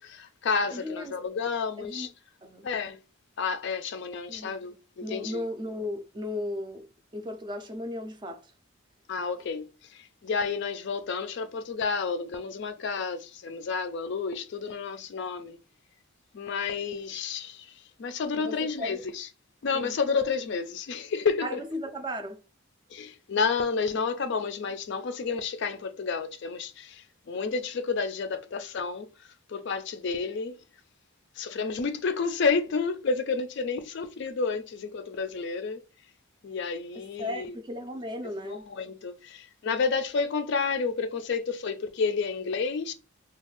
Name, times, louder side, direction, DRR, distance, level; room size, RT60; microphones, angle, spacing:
voice 1, 0.0-2.1 2.6-3.0 3.4-5.5 9.1-15.6 16.3-19.3 19.6-21.6 22.9-29.1 29.5-30.5 31.4-35.8 36.4-37.6 38.4-42.9, left 5 dB, 55° left, 0.4 m, -30 dB
voice 2, 0.7-1.2 1.8-2.1 2.4-2.7 4.3-4.5 5.0-6.9 7.1-8.5 18.3-19.0 19.7-19.9 21.4-22.4 36.9-38.7, left 1 dB, 20° right, 0.4 m, -36 dB
2.5 x 2.3 x 3.2 m
head